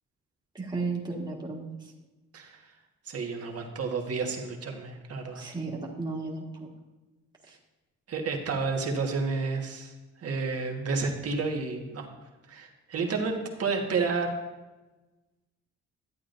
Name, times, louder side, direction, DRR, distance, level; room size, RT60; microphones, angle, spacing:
voice 1, 0.6-1.8 5.4-6.4, right 3 dB, 15° right, -3 dB, 1.8 m, -33 dB
voice 2, 2.3-2.7 3.1-5.4 8.1-9.9 10.2-12.1 12.5-14.3, right 4 dB, 50° right, 1 dB, 1.6 m, -30 dB
12.0 x 8.6 x 2.6 m, 1.1 s
cardioid pair, 90°, 30 cm